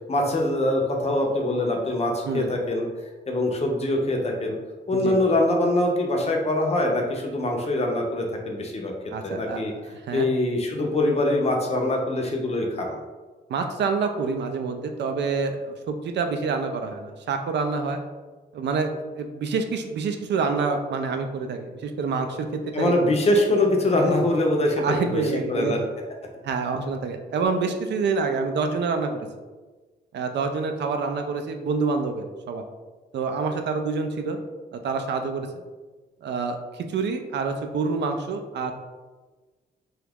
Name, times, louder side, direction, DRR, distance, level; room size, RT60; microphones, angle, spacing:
voice 1, 0.1-2.9 3.3-4.6 4.9-8.9 9.2-9.7 10.1-13.0 22.7-25.2 25.5-25.8, left 1 dB, 35° left, 1 dB, 0.5 m, -23 dB
voice 2, 9.1-10.3 13.5-18.0 18.5-22.9 24.0-24.1 24.8-25.7 26.4-29.3 30.1-32.7 33.1-34.4 34.7-35.6 36.2-38.7, right 4 dB, 75° right, 6 dB, 0.4 m, -27 dB
2.9 x 2.3 x 3.4 m, 1.3 s
wide cardioid pair, 120°, 18 cm